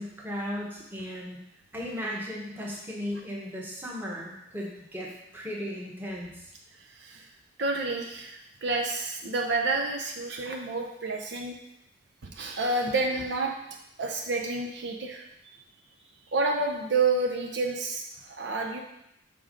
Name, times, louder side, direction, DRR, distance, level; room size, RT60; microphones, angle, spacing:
voice 1, 0.0-1.4 1.7-6.3, equal, 10° right, -3 dB, 1.2 m, -36 dB
voice 2, 7.6-11.5 12.2-13.5 14.0-15.2 16.3-18.8, right 3 dB, 60° right, 1 dB, 0.7 m, -29 dB
6.9 x 3.7 x 5.2 m, 0.83 s
head